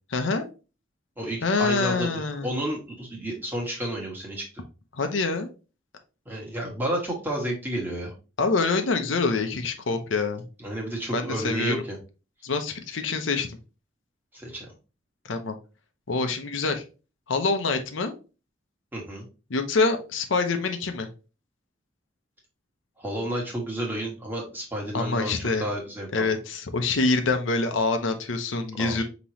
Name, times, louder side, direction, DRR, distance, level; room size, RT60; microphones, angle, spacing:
voice 1, 0.1-0.5 1.4-2.5 4.9-5.5 8.4-10.4 11.1-11.7 12.4-13.5 15.2-15.5 16.1-16.8 17.3-18.1 19.5-21.1 24.9-25.6 26.1-29.0, left 3 dB, 80° left, 6 dB, 0.7 m, -25 dB
voice 2, 1.2-4.5 6.2-8.1 10.6-12.0 14.3-14.7 18.9-19.3 23.0-26.3 28.8-29.0, right 1 dB, 10° right, -2 dB, 1.3 m, -31 dB
5.4 x 3.0 x 2.9 m, 0.33 s
head